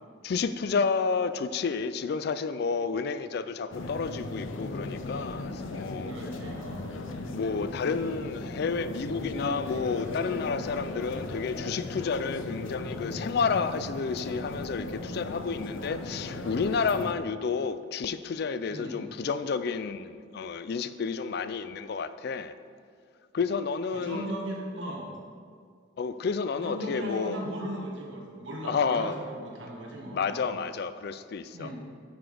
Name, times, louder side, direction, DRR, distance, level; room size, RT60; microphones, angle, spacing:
voice 1, 0.2-6.1 7.3-22.5 23.3-24.3 26.0-27.4 28.6-29.1 30.1-31.7, left 5 dB, 55° left, 12 dB, 0.3 m, -30 dB
sound 1, 3.7-17.1, left 2 dB, 80° left, 0.7 m, -37 dB
voice 2, 6.0-6.9 18.7-19.1 23.9-25.1 26.6-30.5 31.5-31.7, right 1 dB, 70° right, -1 dB, 1.7 m, -37 dB
9.4 x 6.1 x 4.9 m, 2.1 s
head